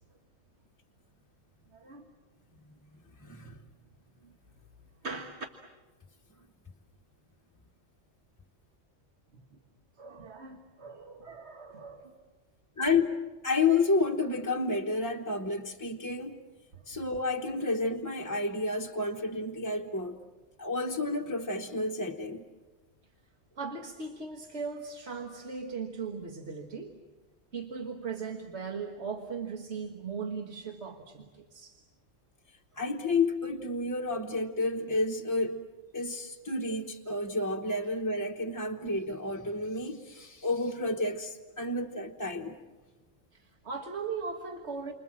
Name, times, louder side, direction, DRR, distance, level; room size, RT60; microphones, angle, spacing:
voice 1, 1.7-2.2 3.4-3.5 4.2-4.3 5.0-5.4 9.3-9.4 10.0-12.1 16.7-16.8 23.6-26.9 27.5-31.8 43.3-44.9, right 5 dB, 60° right, 3 dB, 1.7 m, -39 dB
voice 2, 3.2-3.6 12.8-13.1 13.4-16.4 16.9-20.2 20.6-22.4 32.8-35.7 35.9-42.6, left 3 dB, 15° left, 0 dB, 1.0 m, -30 dB
29.5 x 25.5 x 7.5 m, 1.3 s
omnidirectional pair, 1.3 m